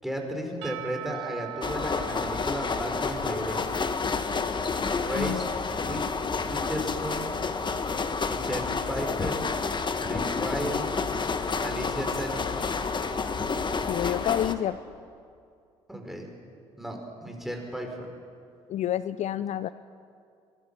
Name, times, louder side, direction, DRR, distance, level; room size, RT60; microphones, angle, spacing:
voice 1, 0.0-3.8 5.0-5.5 5.8-6.0 6.4-7.3 8.3-9.5 10.0-10.9 11.6-12.7 15.9-16.3 16.8-18.1, equal, ahead, 2 dB, 5.4 m, -34 dB
Percussion / Church bell, 0.6-4.5, right 14 dB, 85° right, 0.7 m, -42 dB
sound 1, 1.6-14.5, left 4 dB, 30° left, 1.6 m, -29 dB
voice 2, 13.9-14.8 18.7-19.7, left 11 dB, 55° left, 15 dB, 0.6 m, -28 dB
23.5 x 19.5 x 5.8 m, 2.3 s
hypercardioid pair, 55°, 15 cm